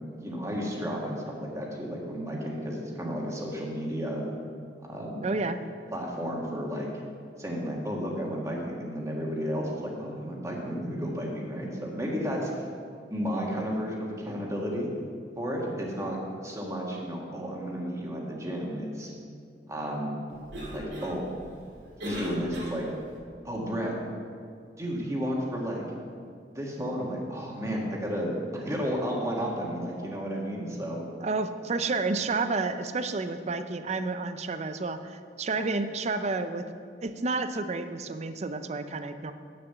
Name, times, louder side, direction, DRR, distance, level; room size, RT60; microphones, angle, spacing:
voice 1, 0.1-4.2 4.8-5.2 5.9-6.9 7.4-12.7 13.1-14.9 15.4-16.2 16.4-19.1 19.7-20.1 20.7-21.2 22.0-22.9 23.4-23.9 24.8-25.8 26.5-31.0, equal, 20° right, -2 dB, 1.7 m, -32 dB
voice 2, 5.2-5.6 31.2-36.7 37.0-39.3, right 3 dB, 40° right, 10 dB, 0.5 m, -30 dB
Cough, 20.3-23.2, equal, 70° right, 2.6 m, -39 dB
9.2 x 6.8 x 6.8 m, 2.2 s
head